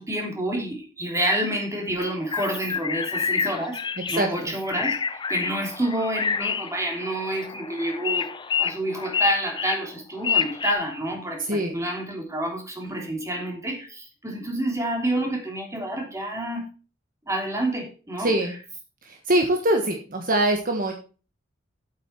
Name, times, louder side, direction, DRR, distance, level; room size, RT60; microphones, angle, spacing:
voice 1, 0.0-3.8 4.1-8.3 8.6-16.7 17.3-18.3, right 1 dB, 15° right, 1 dB, 3.1 m, -28 dB
sound 1, 2.0-10.7, left 6 dB, 25° left, 0.5 m, -28 dB
voice 2, 4.1-4.5 11.4-11.8 12.9-13.1 18.2-18.5 19.0-20.9, right 1 dB, 45° right, 3 dB, 1.4 m, -24 dB
8.9 x 8.3 x 4.5 m, 0.36 s
head